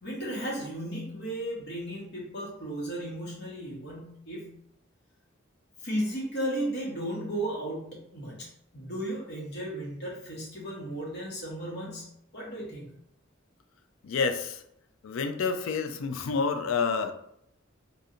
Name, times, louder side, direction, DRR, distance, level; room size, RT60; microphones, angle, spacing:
voice 1, 0.0-4.5 5.8-8.5 8.7-12.1 12.3-12.9, right 1 dB, 60° left, -5 dB, 1.3 m, -35 dB
voice 2, 14.0-14.6 15.0-17.1, left 5 dB, 80° left, 8 dB, 0.4 m, -28 dB
2.6 x 2.5 x 4.1 m, 0.75 s
head